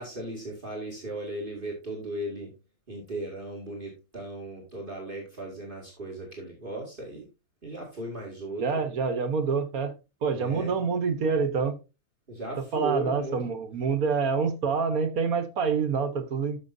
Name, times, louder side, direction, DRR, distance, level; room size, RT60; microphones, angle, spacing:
voice 1, 0.0-2.5 2.9-7.3 7.6-8.8 10.3-10.7 12.3-13.5, right 1 dB, 35° right, -2 dB, 2.6 m, -36 dB
voice 2, 8.6-10.0 10.2-11.7 12.7-16.6, right 5 dB, 80° right, 9 dB, 1.7 m, -27 dB
13.0 x 6.3 x 2.7 m, 0.28 s
omnidirectional pair, 1.5 m